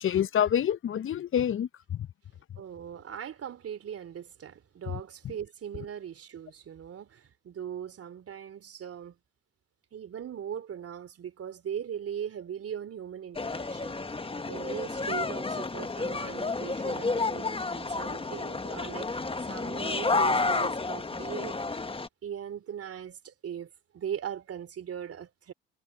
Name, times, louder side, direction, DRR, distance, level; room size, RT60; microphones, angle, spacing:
voice 1, 0.0-2.1, left 9 dB, 40° left, 0.9 m, -27 dB
voice 2, 2.6-9.1 9.9-13.9 14.5-19.2 19.5-21.8 22.2-23.7 23.9-25.5, right 9 dB, 50° right, 3.2 m, -39 dB
sound 1, 13.3-22.1, left 3 dB, 20° left, 1.6 m, -31 dB
hypercardioid pair, 55°, 31 cm